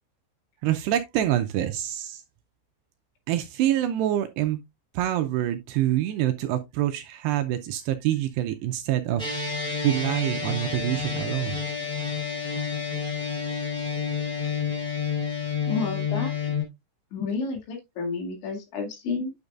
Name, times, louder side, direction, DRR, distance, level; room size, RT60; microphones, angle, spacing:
voice 1, 0.6-2.2 3.3-4.6 4.9-11.6, right 12 dB, 80° right, 2.5 m, -26 dB
sound 1, 9.2-16.6, left 6 dB, ahead, 3.1 m, -29 dB
voice 2, 15.6-16.5 17.1-19.3, left 4 dB, 80° left, 4.6 m, -31 dB
9.5 x 6.6 x 2.4 m
omnidirectional pair, 5.3 m